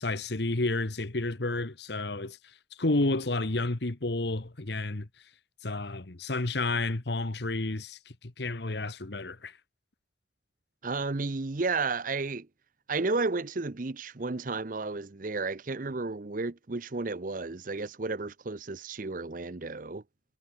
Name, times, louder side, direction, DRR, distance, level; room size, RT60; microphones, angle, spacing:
voice 1, 0.0-5.1 5.6-9.6, left 2 dB, 60° left, 1.3 m, -31 dB
voice 2, 10.8-12.5 12.9-20.0, right 3 dB, 45° right, 0.7 m, -32 dB
head